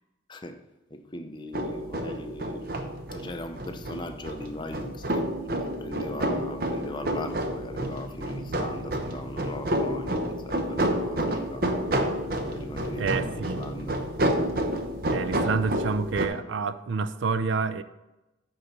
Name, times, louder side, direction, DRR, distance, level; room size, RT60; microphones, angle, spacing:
voice 1, 0.3-0.6 0.9-2.7 3.1-11.7 12.4-14.0, left 1 dB, 25° left, 7 dB, 0.6 m, -39 dB
sound 1, 1.5-16.3, right 1 dB, 50° right, 0.8 m, -29 dB
voice 2, 13.0-13.6 15.1-17.8, right 4 dB, 70° right, 12 dB, 0.4 m, -28 dB
9.6 x 4.0 x 6.7 m, 1.0 s
head